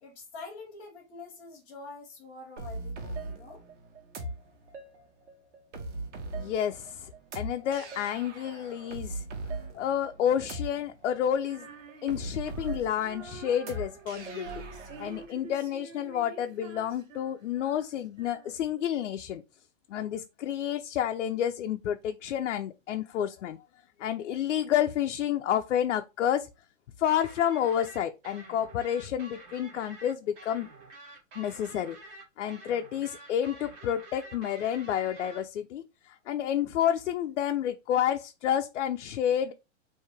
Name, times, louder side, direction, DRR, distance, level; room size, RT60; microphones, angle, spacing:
voice 1, 0.0-3.6, left 3 dB, 5° left, 0.4 m, -46 dB
sound 1, 2.6-15.3, right 2 dB, 65° right, 1.5 m, -40 dB
voice 2, 6.4-7.1 7.3-9.2 9.7-11.7 12.0-14.5 15.0-19.4 19.9-23.6 24.0-26.5 27.0-30.7 31.3-32.0 32.4-39.5, left 10 dB, 70° left, 0.6 m, -30 dB
Female singing, 11.4-18.8, right 6 dB, 90° right, 1.4 m, -48 dB
sound 2, 27.1-35.4, right 2 dB, 30° right, 1.9 m, -49 dB
4.6 x 2.7 x 3.3 m
hypercardioid pair, 155°, 38 cm